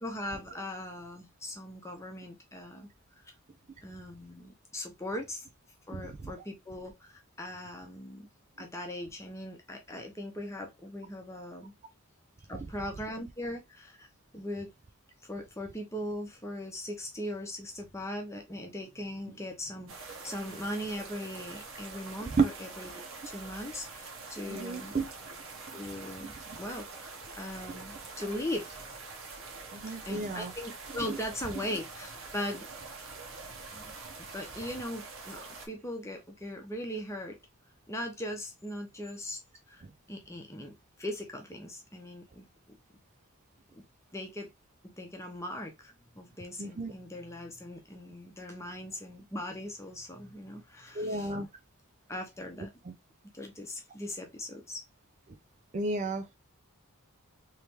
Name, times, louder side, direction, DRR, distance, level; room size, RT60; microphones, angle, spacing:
voice 1, 0.0-2.9 3.2-3.3 3.8-5.5 5.9-8.3 8.6-11.7 12.5-14.1 14.3-14.7 15.2-24.9 25.7-29.0 29.9-32.7 33.7-33.9 34.2-35.4 35.7-37.4 37.9-39.4 39.7-40.7 41.0-42.8 43.7-43.8 44.1-44.5 44.8-51.3 52.1-52.7 53.3-54.8, left 1 dB, 15° left, 0.9 m, -40 dB
sound 1, 19.9-35.7, right 4 dB, 60° right, 1.0 m, -45 dB
voice 2, 24.5-25.1 25.7-25.8 26.5-26.6 29.7-30.5 31.1-31.2 39.8-39.9 46.6-46.9 50.9-51.5 52.8-52.9 55.3-55.4 55.7-56.4, right 3 dB, 35° right, 0.4 m, -32 dB
3.3 x 3.2 x 2.9 m
head